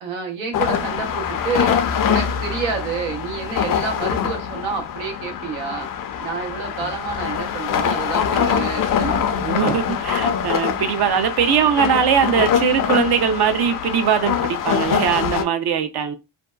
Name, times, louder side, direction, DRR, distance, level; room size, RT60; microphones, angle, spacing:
voice 1, 0.0-5.9 6.2-9.3, right 5 dB, 90° right, 0.9 m, -29 dB
sound 1, 0.5-15.4, left 8 dB, 50° left, 0.5 m, -23 dB
voice 2, 9.3-16.2, right 8 dB, 60° right, 0.6 m, -20 dB
2.6 x 2.1 x 2.3 m
cardioid pair, 80°, 45 cm